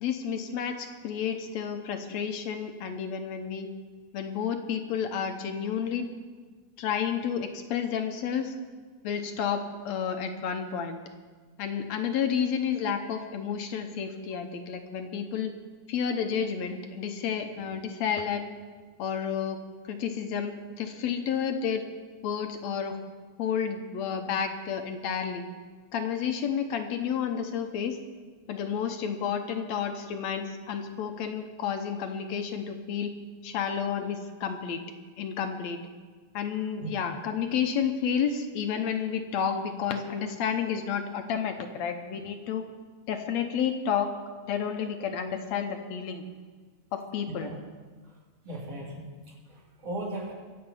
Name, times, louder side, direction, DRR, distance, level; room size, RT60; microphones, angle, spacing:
voice 1, 0.0-3.7 4.1-6.1 6.8-8.5 9.0-11.0 11.6-15.5 15.9-18.5 19.0-19.6 19.9-21.9 22.2-23.0 23.4-25.4 25.9-28.0 28.5-33.2 33.4-34.8 35.2-35.8 36.3-42.6 43.1-44.1 44.5-46.2 46.9-47.5, left 7 dB, 75° left, 5 dB, 2.1 m, -31 dB
voice 2, 47.2-47.6 48.1-48.2 48.4-50.3, right 1 dB, 55° right, -4 dB, 4.0 m, -38 dB
23.5 x 7.9 x 5.5 m, 1.4 s
omnidirectional pair, 3.3 m